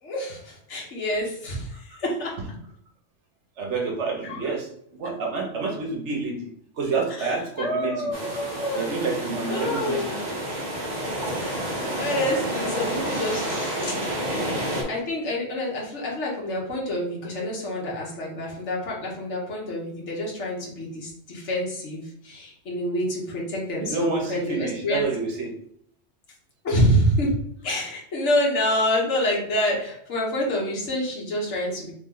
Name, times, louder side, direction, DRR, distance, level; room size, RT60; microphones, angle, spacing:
voice 1, 0.0-2.3 4.2-4.4 5.0-5.1 7.2-9.1 9.5-10.0 11.4-11.6 11.9-13.4 13.8-14.0 14.8-25.1 26.6-31.9, equal, 70° left, -3 dB, 1.5 m, -27 dB
voice 2, 3.6-6.5 6.8-8.1 8.7-10.3 23.8-25.5, right 4 dB, 70° right, 0 dB, 1.3 m, -28 dB
sound 1, 8.1-14.8, equal, 35° right, 1.1 m, -29 dB
sound 2, 12.7-14.4, equal, 15° left, 1.2 m, -39 dB
3.4 x 3.2 x 3.8 m, 0.69 s
omnidirectional pair, 1.3 m